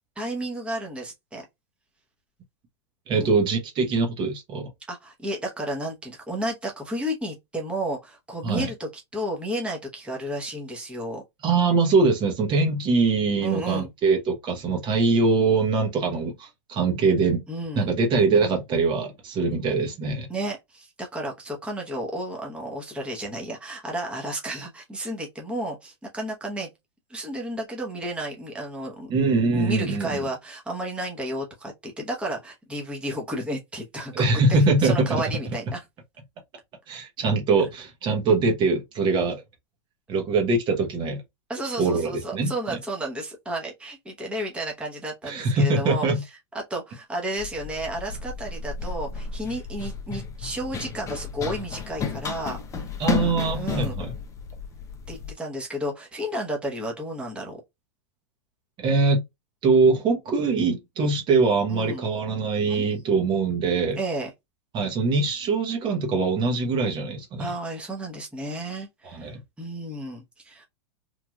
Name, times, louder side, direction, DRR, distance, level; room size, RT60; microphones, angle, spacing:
voice 1, 0.2-1.4 3.1-3.3 4.9-11.2 13.4-13.9 17.5-17.9 20.3-26.7 27.1-29.1 29.5-35.8 41.5-46.1 46.5-52.6 53.2-54.0 55.1-57.6 61.7-62.1 62.7-62.9 64.0-64.3 67.4-70.6, right 1 dB, 5° right, 0.9 m, -32 dB
voice 2, 3.1-4.7 8.4-8.7 11.4-17.4 17.7-20.3 29.1-30.2 34.1-35.2 36.9-39.4 40.1-41.2 41.8-42.8 45.2-46.2 53.0-54.1 58.8-59.2 59.6-64.0 64.7-67.5 69.0-69.4, right 3 dB, 30° right, 0.9 m, -23 dB
Run, 47.4-55.3, left 6 dB, 20° left, 0.6 m, -33 dB
3.1 x 2.4 x 2.2 m
hypercardioid pair, 130°, 15 cm